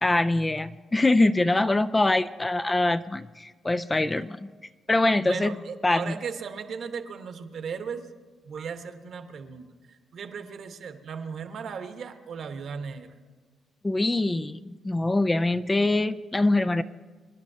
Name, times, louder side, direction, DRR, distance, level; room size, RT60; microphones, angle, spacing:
voice 1, 0.0-4.5 4.9-5.6 5.8-6.1 13.8-16.8, left 2 dB, 15° left, 13 dB, 0.4 m, -24 dB
voice 2, 5.2-8.1 8.4-13.1, right 6 dB, 60° right, 7 dB, 1.0 m, -37 dB
25.5 x 10.5 x 2.7 m, 1.4 s
cardioid pair, 90°, 0 cm